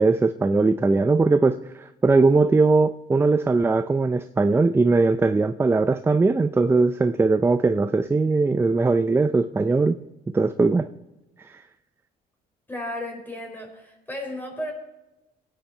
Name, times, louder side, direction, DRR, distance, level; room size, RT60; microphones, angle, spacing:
voice 1, 0.0-10.0 10.3-10.9 11.5-11.6, right 3 dB, 15° right, 10 dB, 0.5 m, -20 dB
voice 2, 12.7-14.7, left 1 dB, 10° left, 1 dB, 5.1 m, -34 dB
23.5 x 9.5 x 4.4 m, 1.0 s
cardioid pair, 110°, 17 cm